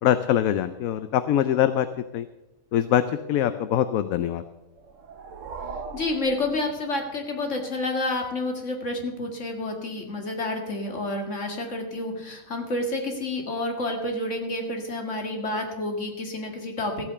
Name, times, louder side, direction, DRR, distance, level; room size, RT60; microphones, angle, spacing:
voice 1, 0.0-1.9 2.1-2.3 2.7-4.4, left 10 dB, 80° left, 11 dB, 1.1 m, -23 dB
sound 1, 4.7-7.3, right 4 dB, 65° right, 1.3 m, -40 dB
voice 2, 5.9-17.1, left 2 dB, 60° left, 3 dB, 2.4 m, -29 dB
14.5 x 8.6 x 6.8 m, 0.96 s
omnidirectional pair, 1.4 m